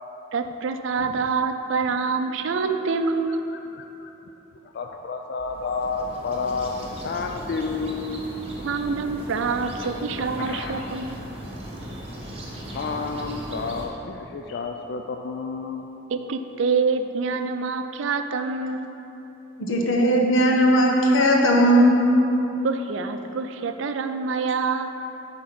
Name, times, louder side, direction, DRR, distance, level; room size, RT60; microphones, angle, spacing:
voice 1, 0.3-3.4 8.6-11.2 16.1-18.9 22.6-24.9, right 4 dB, 70° right, 8 dB, 0.4 m, -26 dB
voice 2, 2.3-2.6 3.5-4.1 4.7-8.7 9.8-10.8 11.9-12.0 12.7-15.9, left 4 dB, 55° left, 4 dB, 0.3 m, -31 dB
sound 1, 5.3-13.9, right 1 dB, 30° right, 1.0 m, -37 dB
voice 3, 19.6-22.0, equal, 80° left, 0 dB, 1.0 m, -18 dB
7.8 x 3.7 x 5.9 m, 3.0 s
head